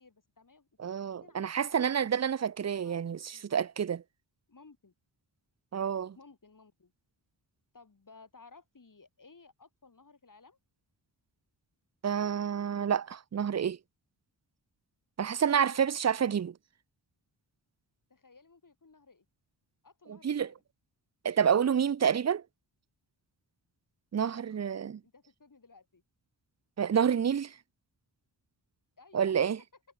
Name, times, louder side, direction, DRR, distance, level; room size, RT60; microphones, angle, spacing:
voice 1, 0.0-1.9 2.7-3.0 3.3-3.5 4.5-4.9 6.2-6.9 7.7-10.6 15.4-16.0 18.1-19.3 19.8-20.6 24.2-26.0 29.0-29.4, left 4 dB, 45° left, 3.9 m, -58 dB
voice 2, 0.8-4.0 5.7-6.2 12.0-13.8 15.2-16.6 20.1-20.5 21.2-22.4 24.1-25.0 26.8-27.6 29.1-29.6, right 8 dB, 35° right, 0.6 m, -28 dB
cardioid pair, 50°, 46 cm